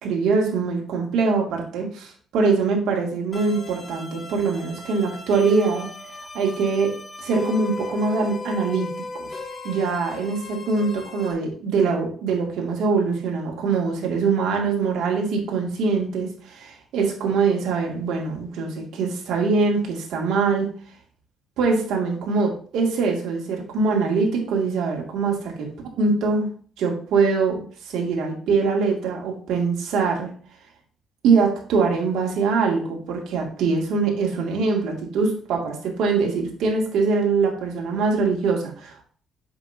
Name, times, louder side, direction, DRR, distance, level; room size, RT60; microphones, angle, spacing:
voice 1, 0.0-5.9 6.3-6.9 7.2-8.9 9.1-9.3 9.6-20.7 21.6-25.5 26.0-26.5 26.8-30.3 31.2-39.0, right 4 dB, 85° right, 0 dB, 2.4 m, -23 dB
sound 1, 3.3-11.3, left 2 dB, 30° left, 1.9 m, -37 dB
7.8 x 6.6 x 2.8 m, 0.44 s
cardioid pair, 90°, 0 cm